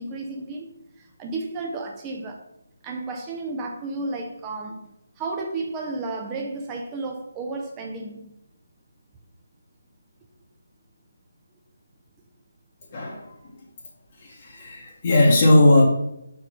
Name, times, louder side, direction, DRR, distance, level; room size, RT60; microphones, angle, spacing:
voice 1, 0.0-2.5 2.8-4.9 5.2-8.3, right 3 dB, 15° right, 1 dB, 0.6 m, -32 dB
voice 2, 14.6-15.8, left 1 dB, 35° left, -4 dB, 1.2 m, -16 dB
5.8 x 4.6 x 5.1 m, 0.84 s
figure-of-eight pair, 150°, 0 cm